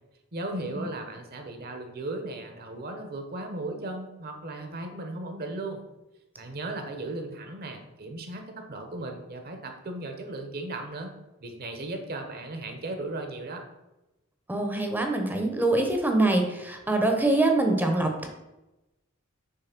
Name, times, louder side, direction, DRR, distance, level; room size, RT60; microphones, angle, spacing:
voice 1, 0.3-5.8 6.4-11.1 11.4-13.6, right 2 dB, 50° right, 4 dB, 1.0 m, -36 dB
voice 2, 14.5-18.3, right 2 dB, 10° right, 3 dB, 0.8 m, -24 dB
6.7 x 3.3 x 5.9 m, 0.98 s
head